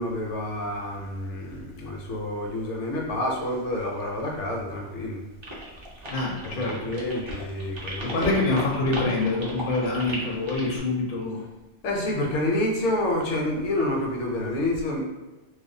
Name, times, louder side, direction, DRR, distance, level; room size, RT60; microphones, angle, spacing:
voice 1, 0.0-5.2 6.6-8.3 11.8-15.0, left 1 dB, 80° left, 0 dB, 0.9 m, -28 dB
sound 1, 5.4-10.8, equal, 40° right, 0.4 m, -36 dB
voice 2, 6.1-6.9 8.0-11.4, left 2 dB, 60° left, -2 dB, 0.6 m, -26 dB
2.4 x 2.1 x 2.6 m, 1.1 s
omnidirectional pair, 1.2 m